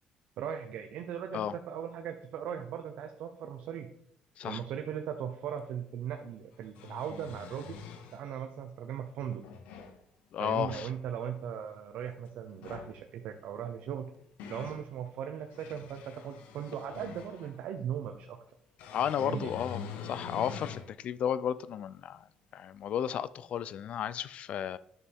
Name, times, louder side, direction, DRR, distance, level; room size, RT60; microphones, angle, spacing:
voice 1, 0.4-3.9 4.4-7.8 8.1-9.4 10.4-14.1 14.5-18.4 19.2-19.6, right 8 dB, 70° right, 4 dB, 0.9 m, -38 dB
sound 1, 5.6-5.7 6.5-8.2 9.2-10.0 10.4-10.9 12.5-13.0 13.9-14.8 15.4-17.6 18.8-20.9 21.4-21.5 23.1-23.2, left 6 dB, 85° left, 1.1 m, -45 dB
voice 2, 10.3-10.9 18.9-22.3 22.5-24.8, left 9 dB, 60° left, 17 dB, 0.5 m, -33 dB
10.5 x 6.7 x 3.6 m, 0.70 s
cardioid pair, 95°, 2 cm